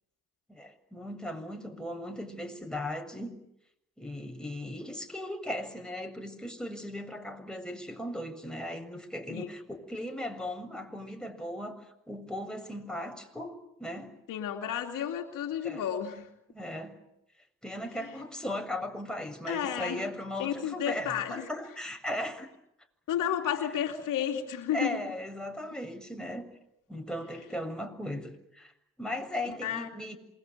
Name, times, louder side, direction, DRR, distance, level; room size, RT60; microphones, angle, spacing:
voice 1, 0.5-3.4 4.0-14.2 15.6-15.8 16.5-17.0 17.6-22.5 24.7-26.5 26.9-28.7 29.0-30.2, left 1 dB, ahead, 3 dB, 7.3 m, -37 dB
voice 2, 14.3-16.3 18.0-18.1 19.5-20.1 20.4-21.5 23.1-25.0 29.6-29.9, left 9 dB, 85° left, 4 dB, 2.8 m, -32 dB
27.5 x 23.0 x 9.4 m, 0.82 s
supercardioid pair, 40°, 32 cm